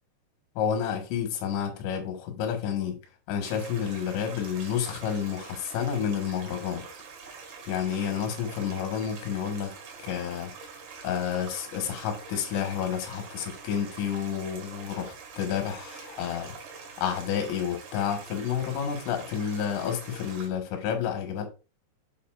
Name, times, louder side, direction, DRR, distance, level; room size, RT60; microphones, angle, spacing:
voice 1, 0.6-3.0 3.3-6.8 7.7-9.7 10.0-10.5 11.0-16.6 17.0-21.5, left 8 dB, 75° left, 3.8 m, -30 dB
Stream, 3.4-20.5, right 5 dB, 70° right, 4.1 m, -45 dB
8.2 x 7.0 x 2.5 m
omnidirectional pair, 5.4 m